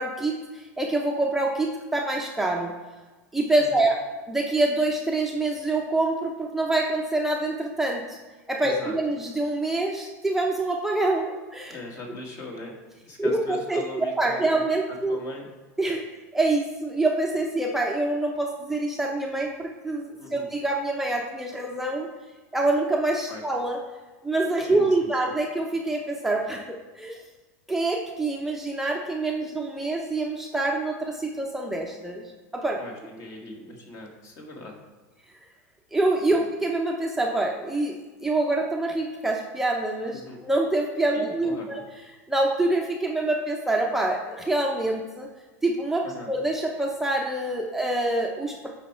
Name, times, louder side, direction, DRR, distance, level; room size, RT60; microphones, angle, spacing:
voice 1, 0.0-2.7 3.3-4.0 4.3-8.2 8.5-11.8 13.2-15.2 15.8-16.0 16.3-22.1 22.5-23.8 24.2-27.2 27.7-32.2 32.5-32.8 35.9-41.8 42.3-45.3 45.6-48.7, right 2 dB, 5° right, -1 dB, 0.7 m, -26 dB
voice 2, 8.6-9.0 11.7-12.8 13.1-14.6 15.1-15.5 20.2-20.5 23.3-23.4 24.7-25.1 32.8-34.7 36.3-36.5 40.1-40.4 41.1-41.8 46.0-46.3, left 2 dB, 40° left, 1 dB, 1.8 m, -40 dB
8.4 x 4.7 x 4.4 m, 1.3 s
supercardioid pair, 120°, 9 cm